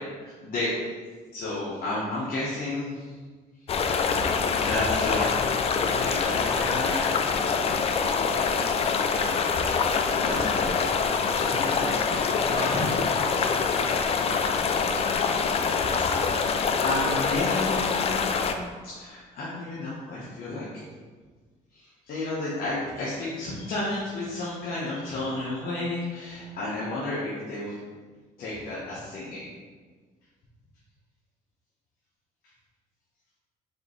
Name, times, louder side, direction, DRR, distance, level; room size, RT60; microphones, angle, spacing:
voice 1, 0.2-0.8 1.3-3.1 4.2-5.3 5.8-7.1 10.1-10.9 11.3-13.2 16.2-20.6 21.7-27.8 28.4-29.5, left 2 dB, 60° left, -8 dB, 1.1 m, -32 dB
sound 1, 3.7-18.5, left 5 dB, 35° left, 0.4 m, -25 dB
4.8 x 3.1 x 3.1 m, 1.4 s
cardioid pair, 110°, 17 cm